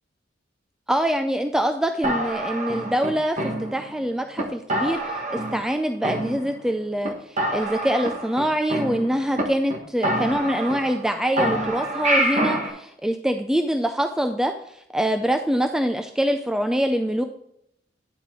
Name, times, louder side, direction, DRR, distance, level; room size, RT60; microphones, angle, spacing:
voice 1, 0.9-17.2, equal, 5° right, 6 dB, 0.3 m, -24 dB
sound 1, 2.0-4.0 4.4-4.5 4.7-5.7 6.0-6.7 7.0-7.1 7.4-9.4 9.7-9.8 10.0-11.1 11.4-12.7, right 1 dB, 40° right, 1.2 m, -26 dB
9.5 x 4.9 x 3.7 m, 0.75 s
head